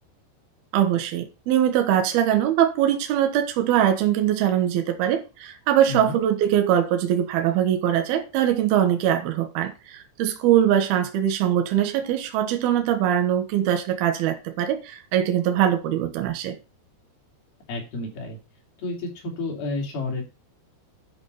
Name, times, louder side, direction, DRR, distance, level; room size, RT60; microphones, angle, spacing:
voice 1, 0.7-16.6, right 10 dB, 70° right, 2.7 m, -22 dB
voice 2, 5.9-6.2 17.7-18.4 18.8-20.2, left 2 dB, 55° left, 4.7 m, -30 dB
10.5 x 6.0 x 6.7 m
omnidirectional pair, 5.6 m